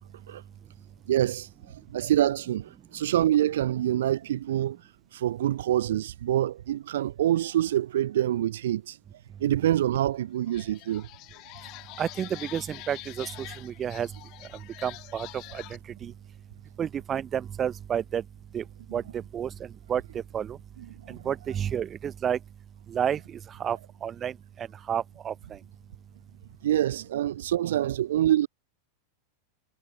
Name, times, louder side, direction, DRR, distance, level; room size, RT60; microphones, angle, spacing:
voice 1, 1.1-4.8 5.1-9.0 9.4-11.1 21.1-21.2 26.6-28.5, right 12 dB, 60° right, 0.4 m, -26 dB
sound 1, 9.9-10.0 10.4-15.8, left 23 dB, 40° left, 2.6 m, -45 dB
voice 2, 12.0-14.1 14.5-16.1 16.8-18.2 18.5-18.6 18.9-20.6 21.1-22.4 22.9-25.6, right 9 dB, 25° right, 0.7 m, -31 dB
figure-of-eight pair, 90°, 0 cm